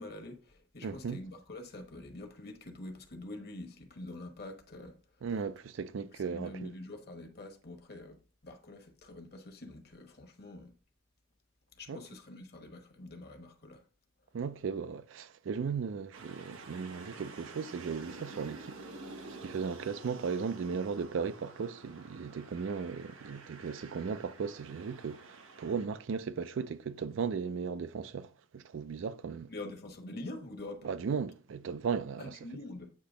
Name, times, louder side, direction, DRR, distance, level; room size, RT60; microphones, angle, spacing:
voice 1, 0.0-5.3 6.1-10.8 11.8-13.8 29.5-30.9 32.2-32.9, left 2 dB, 50° left, 1.1 m, -46 dB
voice 2, 0.8-1.2 5.2-6.7 11.9-12.0 14.3-18.9 19.4-29.5 30.8-32.4, right 6 dB, 70° right, 0.4 m, -36 dB
sound 1, 16.1-25.9, right 3 dB, 90° right, 0.9 m, -49 dB
8.4 x 2.9 x 5.0 m
head